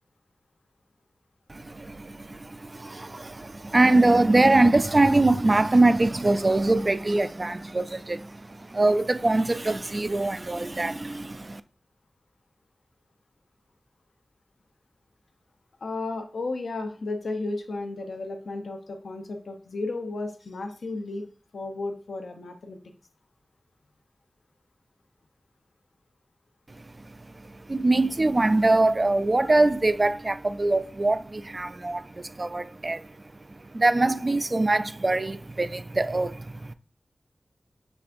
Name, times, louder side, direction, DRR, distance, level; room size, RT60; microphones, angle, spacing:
voice 1, 1.5-11.6 27.7-33.1 33.5-36.7, right 2 dB, 40° right, 0.3 m, -23 dB
voice 2, 15.8-21.3 21.5-22.8, left 2 dB, 90° left, 0.6 m, -33 dB
6.0 x 3.3 x 2.5 m
wide cardioid pair, 60°, 0 cm